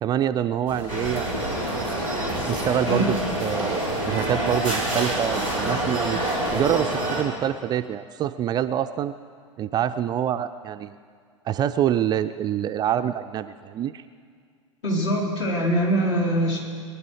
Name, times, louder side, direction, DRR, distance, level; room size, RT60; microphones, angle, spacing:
voice 1, 0.0-1.3 2.5-6.2 6.5-9.1 9.6-10.9 11.5-14.0, right 10 dB, 25° right, 9 dB, 0.4 m, -26 dB
sound 1, 0.7-6.9, left 2 dB, 40° left, 3.0 m, -36 dB
sound 2, 0.9-7.2, right 1 dB, 90° left, 3.4 m, -27 dB
voice 2, 14.8-16.6, right 1 dB, 60° left, -4 dB, 4.1 m, -23 dB
22.5 x 11.0 x 4.8 m, 2.1 s
figure-of-eight pair, 85°, 16 cm